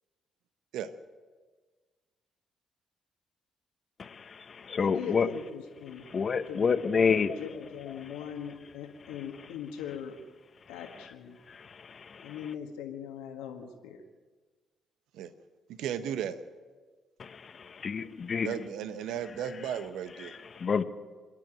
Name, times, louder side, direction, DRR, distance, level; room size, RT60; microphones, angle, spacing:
voice 1, 4.0-5.3 6.0-7.4 8.0-8.3 10.8-11.1 11.5-12.5 17.2-18.6 20.2-20.8, left 6 dB, 45° left, 1.2 m, -30 dB
voice 2, 4.7-6.0 6.5-6.6 6.9-10.2 10.7-11.4 12.2-14.0, left 8 dB, 75° left, 1.6 m, -40 dB
voice 3, 15.8-16.4 18.4-20.3, right 9 dB, 70° right, 0.9 m, -35 dB
26.5 x 10.5 x 9.0 m
hypercardioid pair, 45°, 0 cm